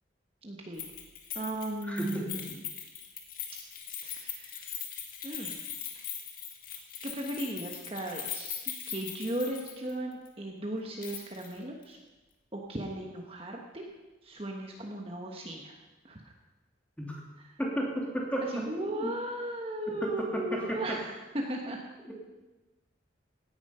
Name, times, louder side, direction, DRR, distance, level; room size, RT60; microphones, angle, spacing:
voice 1, 0.4-0.8 1.3-2.6 4.0-4.8 5.2-5.5 5.9-6.2 7.0-8.6 8.9-12.0 12.5-13.8 14.2-15.8 16.0-16.2 17.5-17.6 18.5-21.8, right 1 dB, 30° right, 0 dB, 1.3 m, -36 dB
Keys jangling, 0.8-9.9 10.2-10.3 11.0-11.5 11.8-11.9, left 9 dB, 45° left, 2.1 m, -40 dB
voice 2, 1.9-2.4 17.0-17.2 17.6-19.1 19.9-21.0 22.1-22.2, right 1 dB, 5° left, -2 dB, 2.6 m, -33 dB
17.0 x 10.5 x 5.6 m, 1.1 s
head